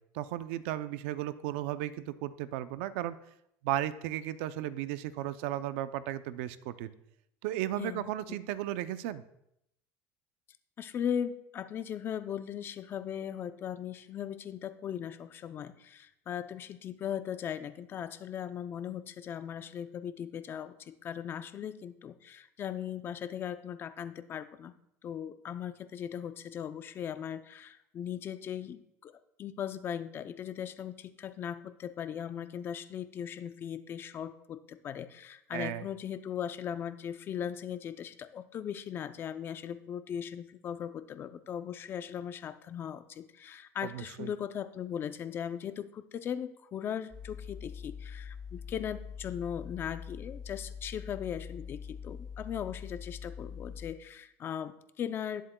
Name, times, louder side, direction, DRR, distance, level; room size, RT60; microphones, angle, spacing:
voice 1, 0.1-3.2 3.6-6.9 7.4-9.2 35.5-35.8 43.8-44.3, right 13 dB, 85° right, 13 dB, 0.6 m, -35 dB
voice 2, 7.7-8.4 10.8-24.7 25.0-29.1 29.4-55.4, left 9 dB, 35° left, 11 dB, 0.5 m, -38 dB
sound 1, 47.1-53.9, left 6 dB, 10° left, 3.1 m, -44 dB
19.0 x 7.5 x 2.3 m, 0.78 s
cardioid pair, 145°, 7 cm